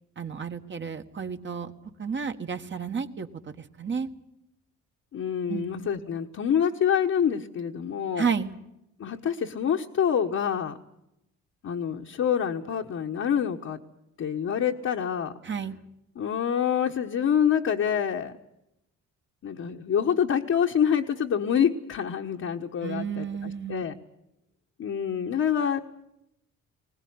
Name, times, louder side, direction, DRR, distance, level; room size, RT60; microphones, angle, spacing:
voice 1, 0.2-1.7 2.0-4.1 5.5-5.9 8.1-8.5 15.4-15.8 22.8-23.8, right 6 dB, 40° right, 7 dB, 1.6 m, -32 dB
voice 2, 5.1-8.3 9.0-10.8 11.6-13.8 14.2-15.3 16.1-18.3 19.4-23.9 24.8-25.8, left 8 dB, 55° left, 1 dB, 1.4 m, -26 dB
21.0 x 18.5 x 9.7 m, 0.85 s
cardioid pair, 90°, 30 cm